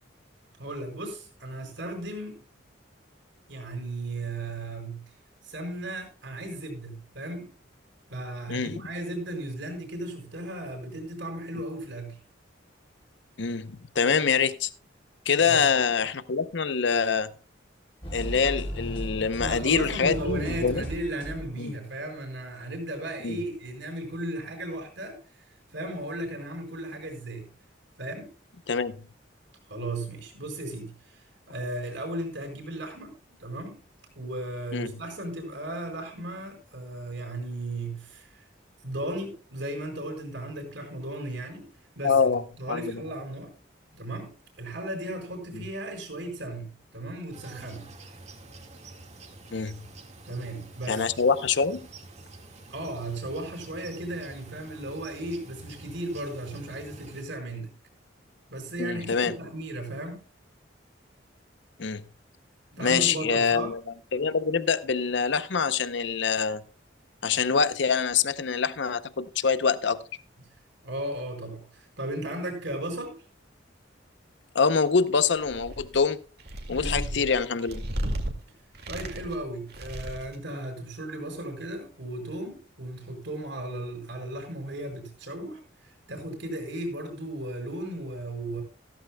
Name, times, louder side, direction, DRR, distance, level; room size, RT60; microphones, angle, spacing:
voice 1, 0.6-2.4 3.5-5.0 5.4-7.5 8.1-12.2 15.4-15.7 19.4-27.5 28.0-28.3 29.7-33.8 34.1-38.4 38.8-41.7 41.9-43.5 43.9-47.9 50.3-51.1 52.7-57.7 58.5-60.2 62.7-63.7 70.8-73.2 76.7-77.2 78.9-88.6, right 1 dB, 70° right, 4.6 m, -36 dB
voice 2, 8.5-8.8 13.4-14.7 15.3-17.3 18.1-20.8 21.6-21.7 23.2-23.4 28.7-29.0 34.7-34.9 42.0-42.4 42.7-43.0 45.5-45.6 49.5-49.8 50.9-51.9 58.8-59.3 61.8-62.0 62.8-63.8 64.1-66.6 67.2-70.0 74.5-76.2 76.7-77.8, left 5 dB, 65° left, 0.7 m, -25 dB
sound 1, 18.0-21.8, right 1 dB, 30° left, 3.7 m, -36 dB
sound 2, 47.3-57.2, right 2 dB, 35° right, 1.8 m, -48 dB
sound 3, 75.3-76.0 76.4-78.3 78.8-79.4 79.7-80.4, right 1 dB, 55° right, 2.1 m, -33 dB
15.0 x 13.5 x 2.2 m
head